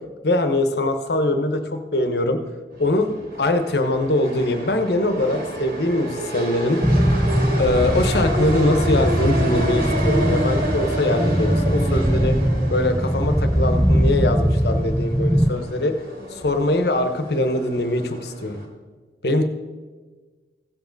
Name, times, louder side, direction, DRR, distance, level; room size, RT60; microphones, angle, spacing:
voice 1, 0.2-2.4 2.8-3.1 3.4-6.8 7.6-12.4 12.7-16.0 16.3-18.6 19.2-19.4, left 1 dB, 65° left, 8 dB, 0.9 m, -22 dB
sound 1, 2.7-18.6, right 1 dB, 55° right, 2.3 m, -30 dB
sound 2, 6.8-15.5, equal, ahead, 0.4 m, -21 dB
15.5 x 7.3 x 4.0 m, 1.4 s
head